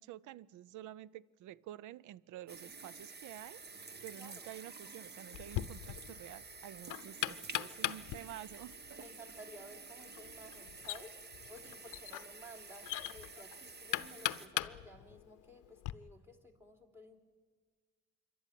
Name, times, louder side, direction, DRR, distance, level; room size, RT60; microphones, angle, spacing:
voice 1, 0.0-9.0, right 13 dB, 80° right, 23 dB, 0.5 m, -50 dB
sound 1, 2.5-14.5, right 4 dB, 35° right, 1.1 m, -51 dB
voice 2, 4.1-4.5 7.6-8.0 9.0-11.1 11.5-12.9 13.1-17.2, equal, 10° right, 4 dB, 3.1 m, -55 dB
Knock, 5.3-15.9, left 16 dB, 90° left, 0.7 m, -41 dB
27.0 x 12.0 x 10.0 m, 1.5 s
cardioid pair, 90°, 30 cm